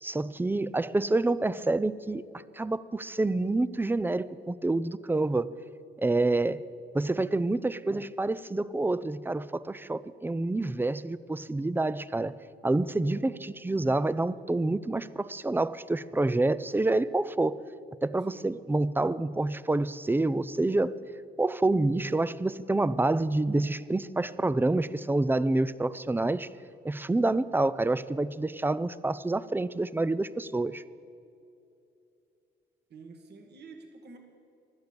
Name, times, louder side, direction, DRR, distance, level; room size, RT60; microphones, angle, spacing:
voice 1, 0.0-2.2 2.5-5.5 6.0-6.6 6.9-12.3 12.6-17.6 18.0-21.0 21.4-26.5 26.8-30.8, right 2 dB, 10° right, 17 dB, 0.5 m, -27 dB
voice 2, 32.9-34.2, right 4 dB, 55° right, 4 dB, 1.9 m, -48 dB
16.0 x 12.0 x 6.9 m, 2.7 s
cardioid pair, 90°, 20 cm